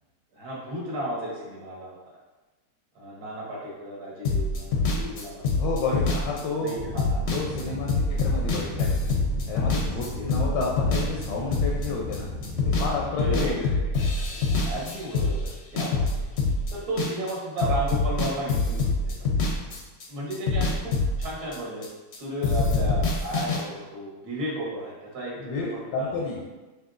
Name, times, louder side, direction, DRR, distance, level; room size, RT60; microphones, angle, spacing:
voice 1, 0.3-2.1 2.9-6.0 6.6-7.2 7.6-7.7 9.7-9.8 10.1-10.3 13.2-13.9 14.3-16.1 16.7-19.3 20.1-20.9 21.2-21.9 22.2-26.1, right 1 dB, 65° right, -5 dB, 1.5 m, -34 dB
sound 1, 4.2-12.2 12.4-12.9 13.2-17.3 17.6-20.1 20.3-22.2 22.4-23.6, left 3 dB, 65° left, 0.6 m, -25 dB
voice 2, 5.6-6.9 7.3-9.2 9.5-12.3 12.6-13.7 25.4-26.4, left 4 dB, 90° left, -3 dB, 1.3 m, -31 dB
sound 2, 6.7-14.1, left 1 dB, 85° right, 1.5 m, -36 dB
5.0 x 2.8 x 2.4 m, 1.2 s
omnidirectional pair, 1.8 m